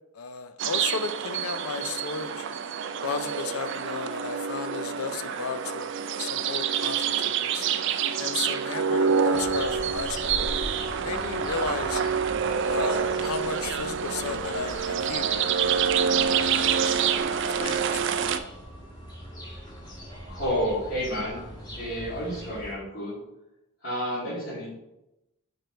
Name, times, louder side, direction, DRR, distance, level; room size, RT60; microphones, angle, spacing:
voice 1, 0.1-2.4 3.0-5.9 6.2-7.7 8.2-10.5 10.9-12.0 12.6-17.0 17.6-18.0, left 5 dB, 75° left, 10 dB, 0.5 m, -34 dB
sound 1, 0.6-18.4, right 7 dB, 55° right, 0.3 m, -27 dB
sound 2, 9.3-22.7, equal, 20° left, 1.5 m, -41 dB
voice 2, 20.3-21.4 21.8-23.2 23.8-24.7, equal, 50° left, -11 dB, 2.2 m, -30 dB
4.9 x 4.6 x 4.4 m, 0.92 s
head